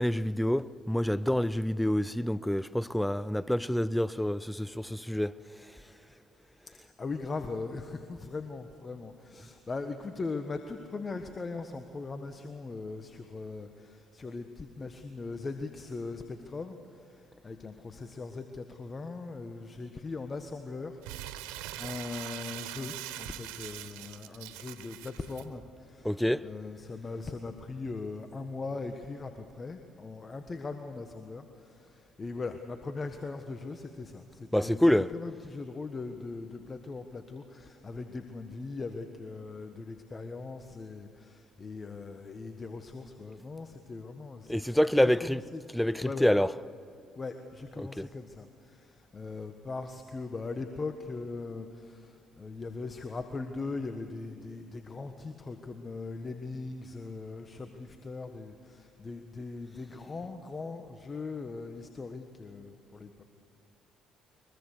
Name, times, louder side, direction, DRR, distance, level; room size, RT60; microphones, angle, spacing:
voice 1, 0.0-5.4 26.0-26.5 34.5-35.1 44.5-45.4 45.7-46.5 47.8-48.0, left 1 dB, 5° left, 0.6 m, -27 dB
voice 2, 6.7-45.6 46.0-46.3 47.2-63.2, left 3 dB, 35° left, 1.4 m, -40 dB
Crumpling crinkling, 21.0-25.4, right 14 dB, 85° right, 0.8 m, -42 dB
23.0 x 22.0 x 6.7 m
hypercardioid pair, 55°, 0 cm